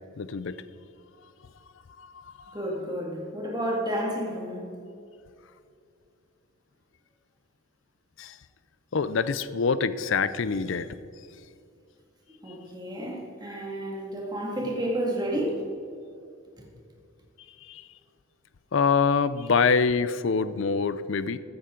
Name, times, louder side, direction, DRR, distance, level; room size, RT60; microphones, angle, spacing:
voice 1, 0.2-0.5 2.0-2.6 8.2-8.3 8.9-10.9 17.7-17.8 18.7-21.4, left 5 dB, 60° left, 0.5 m, -25 dB
voice 2, 2.5-4.8 12.4-15.6, right 1 dB, 20° right, 2.0 m, -31 dB
14.5 x 10.0 x 3.8 m
head